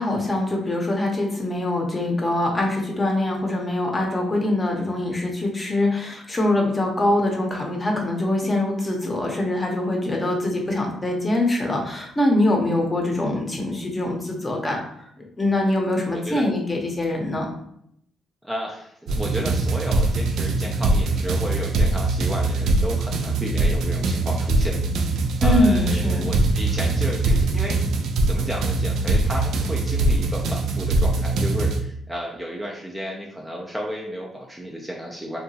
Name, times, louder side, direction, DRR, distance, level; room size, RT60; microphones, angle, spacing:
voice 1, 0.0-15.1 15.4-17.5 25.4-26.3, left 1 dB, 25° left, 0 dB, 0.7 m, -23 dB
voice 2, 16.1-16.4 18.4-24.8 25.4-27.8 28.2-35.4, equal, 10° right, -2 dB, 0.4 m, -32 dB
sound 1, 19.1-31.8, right 2 dB, 75° right, 0.3 m, -22 dB
2.8 x 2.3 x 2.7 m, 0.72 s
cardioid pair, 90°, 0 cm